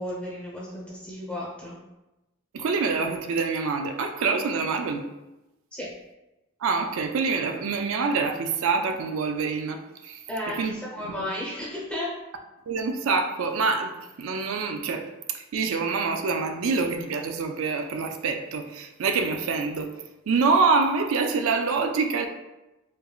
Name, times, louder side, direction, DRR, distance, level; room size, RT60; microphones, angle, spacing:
voice 1, 0.0-1.8 5.7-5.9 10.3-12.1, left 1 dB, 5° left, -6 dB, 0.8 m, -33 dB
voice 2, 2.5-5.0 6.6-10.7 11.0-11.3 12.7-13.9 14.2-20.0 20.3-22.3, right 4 dB, 70° right, 6 dB, 0.4 m, -26 dB
4.4 x 2.5 x 2.3 m, 0.98 s
head